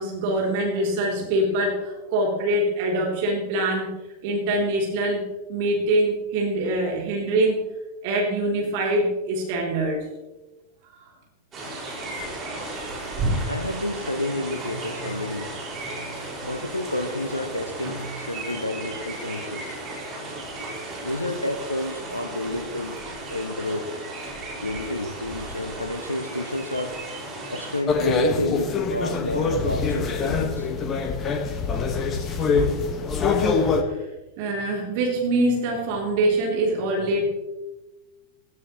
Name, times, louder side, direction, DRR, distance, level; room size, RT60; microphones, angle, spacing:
voice 1, 0.0-3.9 4.2-7.6 8.0-10.1 11.0-11.1 12.4-12.8 13.0-13.1 16.1-16.4 32.3-32.4 33.4-34.1 34.4-37.2, right 1 dB, 50° right, -1 dB, 3.6 m, -24 dB
sound 1, 11.5-27.8, right 2 dB, 25° right, 6.1 m, -34 dB
voice 2, 13.5-15.5 16.4-19.8 21.0-23.0 23.3-23.9 24.6-27.0 27.5-30.7 31.6-31.8, left 1 dB, 85° left, 7 dB, 1.1 m, -30 dB
sound 2, 27.9-33.8, left 4 dB, 25° left, 1.7 m, -24 dB
17.5 x 16.0 x 3.3 m, 1.1 s
figure-of-eight pair, 90°, 0 cm